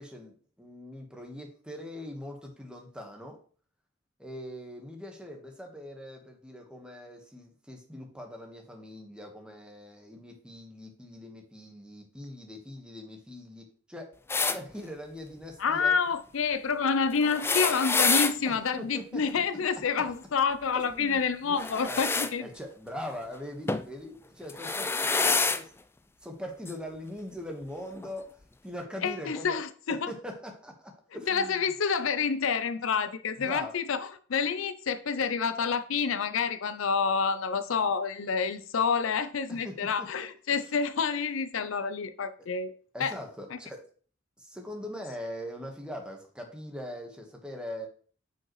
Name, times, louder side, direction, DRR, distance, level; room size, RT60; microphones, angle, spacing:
voice 1, 0.0-3.4 4.2-14.1 14.5-16.0 18.4-19.2 20.0-20.1 20.7-25.7 26.2-29.6 30.1-31.7 33.4-33.8 39.5-40.3 42.4-42.5 42.9-43.9 44.4-47.9, equal, 5° right, 1.3 m, -42 dB
sound 1, 14.3-14.6 17.2-18.3 21.6-22.3 23.7-23.9 24.5-25.6 26.7-26.8 28.0-28.1, left 4 dB, 10° left, 0.3 m, -27 dB
voice 2, 15.6-22.5 29.0-30.1 31.3-42.7 43.0-43.1 43.5-43.6, left 5 dB, 75° left, 0.5 m, -28 dB
8.5 x 5.3 x 3.1 m
head